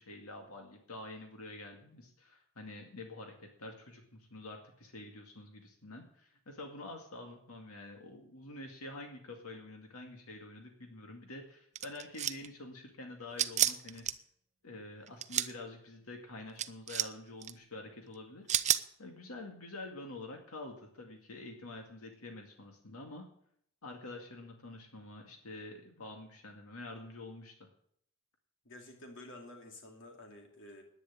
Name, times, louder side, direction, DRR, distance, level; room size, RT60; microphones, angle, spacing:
voice 1, 0.0-14.1 14.6-18.7 19.0-23.3 23.8-27.6, left 2 dB, 85° left, 2 dB, 2.2 m, -47 dB
sound 1, 11.8-12.5 13.4-14.1 15.1-15.5 16.6-17.1 17.4-17.5 18.5-18.8, right 10 dB, 35° right, 0.6 m, -30 dB
voice 2, 28.6-30.8, left 1 dB, 60° left, 2 dB, 2.6 m, -51 dB
10.5 x 9.8 x 8.8 m, 0.67 s
head